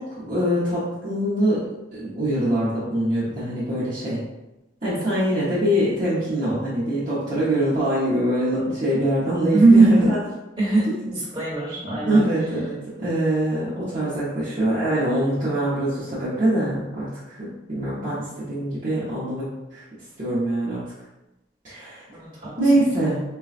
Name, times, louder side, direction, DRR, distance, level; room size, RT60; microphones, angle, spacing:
voice 1, 0.0-1.6 1.9-4.3 4.8-10.2 10.9-11.0 12.0-19.8 20.2-20.8 21.6-22.0 22.6-23.2, right 1 dB, 40° right, -12 dB, 0.9 m, -23 dB
voice 2, 9.5-10.1 10.6-12.3 22.1-22.8, right 3 dB, 25° right, -7 dB, 1.2 m, -19 dB
4.0 x 2.3 x 2.4 m, 0.99 s
head